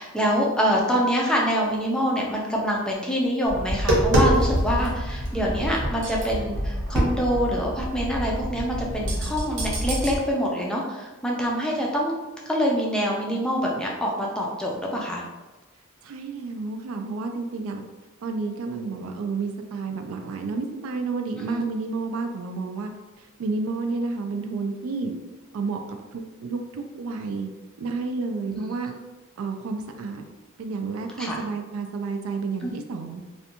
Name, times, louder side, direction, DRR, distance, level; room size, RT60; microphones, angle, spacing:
voice 1, 0.0-12.2 12.5-15.2 21.4-21.6 28.5-28.6 31.2-31.4 32.6-32.7, equal, 5° left, -3 dB, 0.3 m, -25 dB
Tap, 3.5-10.2, right 1 dB, 60° right, 0.8 m, -26 dB
voice 2, 16.0-17.8 18.2-22.9 23.2-25.1 25.5-27.5 27.8-28.9 29.4-30.2 30.6-33.2, right 4 dB, 75° right, 5 dB, 0.3 m, -30 dB
2.5 x 2.2 x 2.8 m, 1.2 s
head